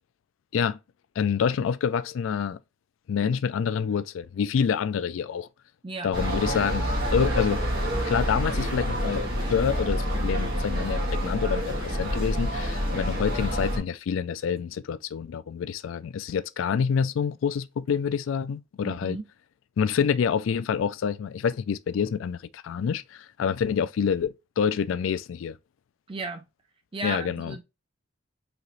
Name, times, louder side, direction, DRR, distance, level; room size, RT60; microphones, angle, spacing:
voice 1, 1.2-2.6 3.1-5.5 6.0-7.6 8.1-19.2 19.8-25.6 27.0-27.5, left 7 dB, 90° left, 0.3 m, -27 dB
sound 1, 6.1-13.8, equal, 55° right, 1.7 m, -27 dB
voice 2, 18.8-19.3 26.1-26.4 26.9-27.6, right 3 dB, 30° right, 0.4 m, -35 dB
4.0 x 2.9 x 3.0 m
head